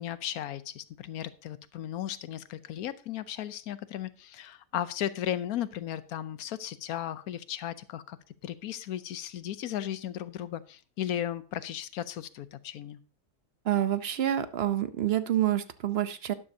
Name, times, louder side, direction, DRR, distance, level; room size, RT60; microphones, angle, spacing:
voice 1, 0.0-8.2 8.4-13.0, left 11 dB, 75° left, 15 dB, 1.1 m, -35 dB
voice 2, 13.6-16.3, right 11 dB, 55° right, 12 dB, 0.8 m, -27 dB
12.0 x 11.0 x 2.7 m, 0.36 s
omnidirectional pair, 1.6 m